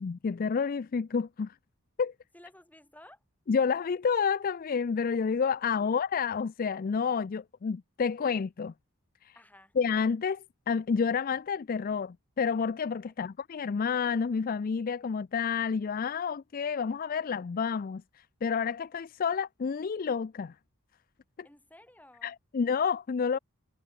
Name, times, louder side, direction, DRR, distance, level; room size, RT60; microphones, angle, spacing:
voice 1, 0.0-1.5 2.0-2.1 3.5-8.7 9.2-9.3 9.8-20.5 22.2-23.4, left 6 dB, 40° left, 0.4 m, -29 dB
voice 2, 2.3-3.2 5.8-5.9 9.4-9.7 13.2-13.3 21.4-22.3, left 1 dB, 5° left, 7.0 m, -55 dB
head